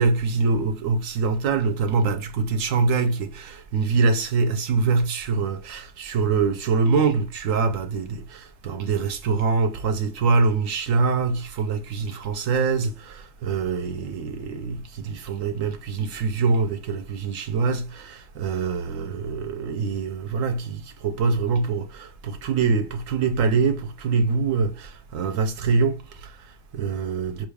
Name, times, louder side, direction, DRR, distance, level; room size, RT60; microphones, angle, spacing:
voice 1, 0.0-27.5, right 4 dB, 70° right, 0.9 m, -24 dB
5.9 x 2.3 x 3.3 m
omnidirectional pair, 1.5 m